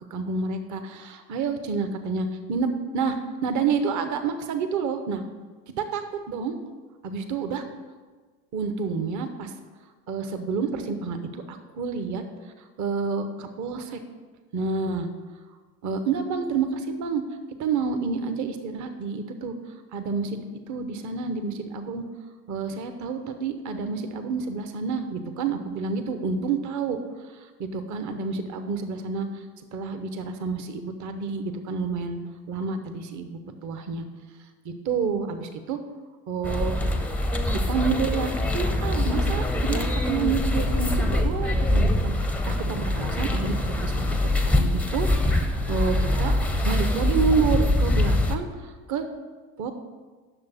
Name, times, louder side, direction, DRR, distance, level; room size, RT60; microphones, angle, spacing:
voice 1, 0.1-5.2 5.8-6.5 7.0-7.6 8.5-9.5 10.1-14.0 14.5-15.1 15.8-17.2 17.6-22.0 22.5-27.0 27.2-32.2 32.5-34.1 34.6-35.8 36.3-36.8 37.5-49.0 49.6-49.7, right 5 dB, 40° right, 8 dB, 0.9 m, -29 dB
sound 1, 36.4-48.4, left 1 dB, 5° left, 0.6 m, -24 dB
8.9 x 6.5 x 4.1 m, 1.4 s
figure-of-eight pair, 65°, 47 cm